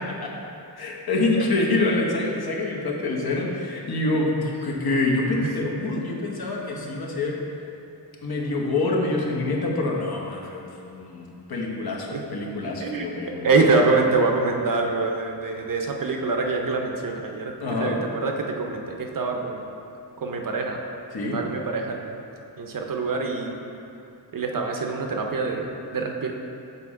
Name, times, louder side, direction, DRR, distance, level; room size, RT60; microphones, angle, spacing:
voice 1, 0.8-7.4 8.2-13.5 17.6-17.9 21.1-21.4, left 2 dB, 60° left, -2 dB, 0.9 m, -26 dB
voice 2, 6.8-7.4 12.1-12.2 12.8-13.1 13.4-19.6 20.2-20.8 21.3-22.2 22.6-23.7 24.3-26.3, right 3 dB, 50° right, 2 dB, 0.6 m, -25 dB
6.8 x 4.2 x 3.6 m, 2.6 s
wide cardioid pair, 130°, 42 cm